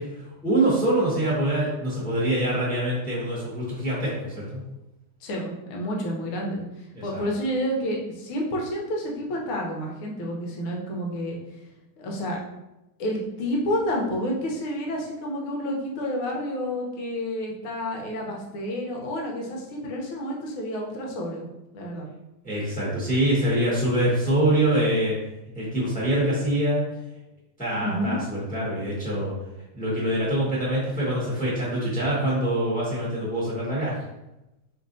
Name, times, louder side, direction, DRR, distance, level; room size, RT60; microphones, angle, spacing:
voice 1, 0.0-4.6 6.9-7.2 22.4-25.1 25.5-26.8 27.6-29.3 29.7-33.9, right 1 dB, 5° left, -6 dB, 1.0 m, -25 dB
voice 2, 5.2-6.6 7.0-11.4 12.0-12.4 13.0-21.5 21.7-22.1 27.8-28.2, equal, 85° left, -1 dB, 1.7 m, -29 dB
4.5 x 3.5 x 2.6 m, 0.95 s
omnidirectional pair, 2.3 m